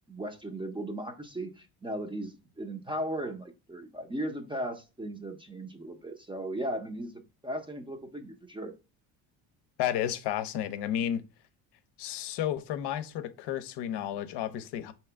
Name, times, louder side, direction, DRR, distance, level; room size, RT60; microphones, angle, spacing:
voice 1, 0.1-8.7, right 1 dB, 10° right, 0.6 m, -37 dB
voice 2, 9.8-11.2 12.0-14.9, left 11 dB, 65° left, 0.7 m, -32 dB
4.7 x 2.9 x 3.4 m
cardioid pair, 100°, 43 cm